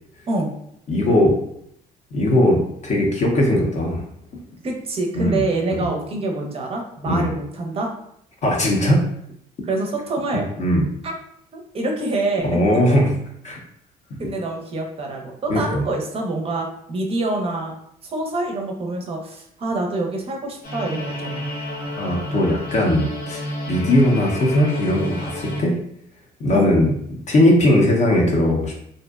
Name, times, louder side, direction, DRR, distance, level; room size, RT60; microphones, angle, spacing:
voice 1, 0.9-1.4 2.1-4.0 5.2-5.4 5.7-5.9 7.1-7.3 8.4-9.0 10.3-10.9 12.4-13.2 13.4-13.6 15.5-15.9 22.0-25.8 26.4-28.7, left 1 dB, 45° left, 0 dB, 0.5 m, -19 dB
voice 2, 4.6-7.9 9.6-10.5 11.0-11.1 11.5-12.6 12.9-13.0 14.2-17.7 18.0-21.5 26.5-26.7, right 2 dB, 35° right, 1 dB, 0.5 m, -26 dB
sound 1, 20.6-25.6, left 1 dB, 70° left, 0.9 m, -30 dB
2.5 x 2.1 x 2.3 m, 0.73 s
cardioid pair, 110°, 17 cm